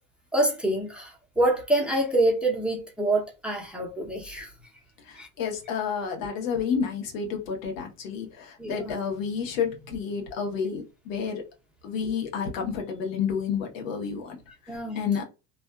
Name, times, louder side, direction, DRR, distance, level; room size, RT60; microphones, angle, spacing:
voice 1, 0.3-4.5 5.2-5.3 8.6-8.9 14.7-15.0, right 1 dB, 5° right, 0.7 m, -26 dB
voice 2, 5.1-11.4 11.8-14.4 14.7-15.2, left 6 dB, 85° left, 1.1 m, -30 dB
2.5 x 2.4 x 2.2 m
supercardioid pair, 120°, 38 cm